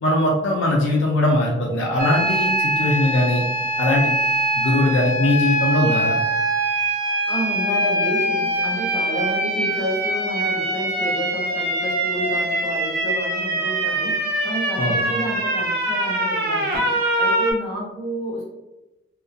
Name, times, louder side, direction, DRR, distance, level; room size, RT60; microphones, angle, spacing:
voice 1, 0.0-3.4 3.8-4.2 4.6-6.1 14.8-15.0, left 1 dB, 65° left, -2 dB, 0.4 m, -20 dB
sound 1, 2.0-17.5, right 1 dB, 45° right, 0.4 m, -23 dB
voice 2, 6.8-18.4, left 1 dB, 15° left, -10 dB, 1.1 m, -30 dB
2.2 x 2.1 x 2.5 m, 1.0 s
head